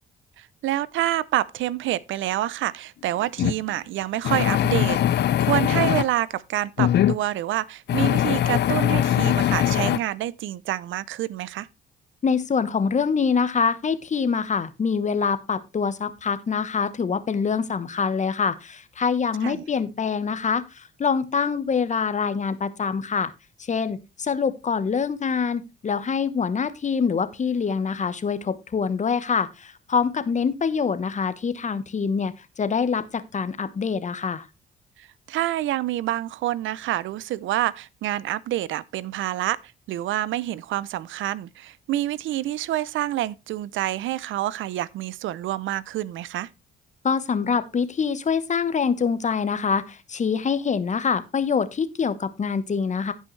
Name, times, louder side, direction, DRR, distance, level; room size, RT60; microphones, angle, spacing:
voice 1, 0.4-11.7 19.4-19.6 35.0-46.5, right 14 dB, 75° right, 0.5 m, -27 dB
sound 1, 3.4-3.6 4.2-6.1 6.8-7.2 7.9-10.0, left 11 dB, 60° left, 0.5 m, -21 dB
voice 2, 12.2-23.3 23.7-34.5 47.0-53.1, left 6 dB, 40° left, 1.1 m, -25 dB
16.0 x 5.5 x 3.2 m
cardioid pair, 90°, 20 cm